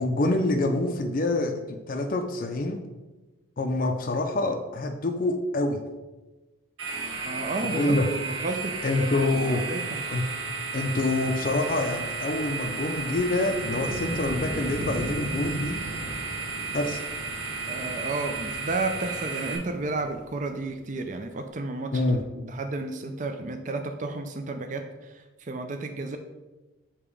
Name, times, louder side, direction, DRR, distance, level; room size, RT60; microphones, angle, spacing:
voice 1, 0.0-2.8 3.6-5.8 7.6-8.1 8.8-9.6 10.1-10.2 10.7-15.8 16.7-17.0 21.9-22.2, left 2 dB, 45° left, 4 dB, 0.4 m, -26 dB
sound 1, 6.8-19.6, right 4 dB, 85° right, 1.1 m, -34 dB
voice 2, 7.2-10.0 17.7-22.2 22.4-26.2, right 2 dB, 40° right, 6 dB, 0.4 m, -32 dB
Wind, 10.4-20.7, right 1 dB, 55° right, 1.3 m, -39 dB
6.9 x 2.9 x 4.8 m, 1.1 s
head